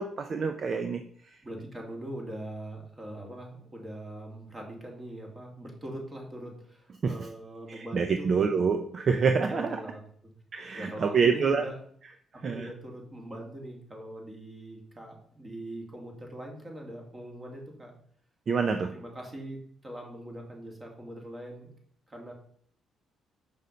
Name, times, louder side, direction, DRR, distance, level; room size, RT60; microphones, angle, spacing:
voice 1, 0.0-1.4 7.0-7.2 7.7-9.8 10.5-11.6 12.4-12.7 18.5-18.9, right 5 dB, 45° right, 7 dB, 0.6 m, -27 dB
voice 2, 1.4-8.5 9.5-10.0 10.8-11.8 12.3-17.9 18.7-21.7 22.1-22.3, right 1 dB, 25° right, 1 dB, 2.6 m, -42 dB
6.8 x 5.5 x 5.0 m, 0.62 s
cardioid pair, 90°, 0 cm